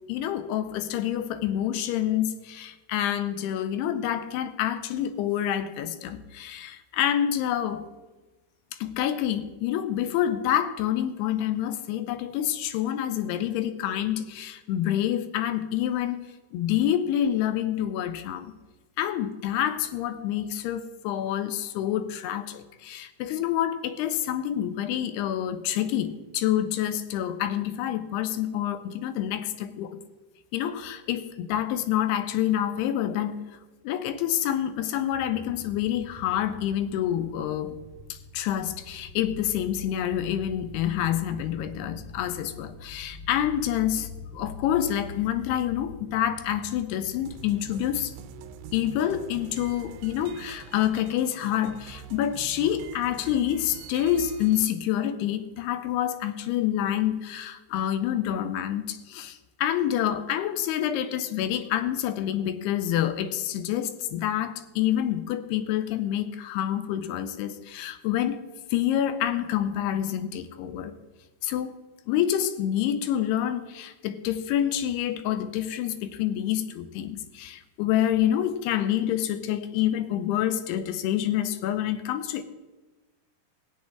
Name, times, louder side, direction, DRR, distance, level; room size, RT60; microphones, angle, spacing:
voice 1, 0.1-7.8 8.8-16.2 16.5-18.5 19.0-30.0 30.5-33.4 33.8-37.8 38.1-48.1 48.7-68.4 68.7-71.0 71.4-71.8 72.1-82.4, left 11 dB, 85° left, 11 dB, 2.6 m, -27 dB
sound 1, 35.1-50.4, left 3 dB, 60° left, 3.1 m, -45 dB
sound 2, 47.3-54.6, right 8 dB, 85° right, 2.8 m, -45 dB
16.5 x 8.5 x 3.6 m, 1.2 s
omnidirectional pair, 4.7 m